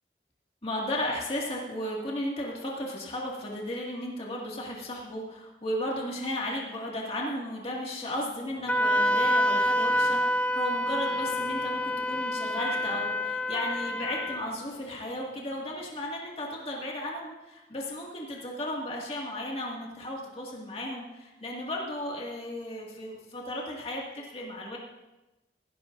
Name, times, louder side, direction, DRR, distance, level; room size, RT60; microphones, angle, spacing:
voice 1, 0.6-24.8, left 1 dB, 35° left, -3 dB, 2.1 m, -35 dB
sound 1, 8.3-16.3, equal, 40° right, 1.6 m, -50 dB
Wind instrument woodwind instrument, 8.7-14.5, left 1 dB, 5° left, 0.3 m, -27 dB
16.5 x 16.0 x 2.6 m, 1.0 s
head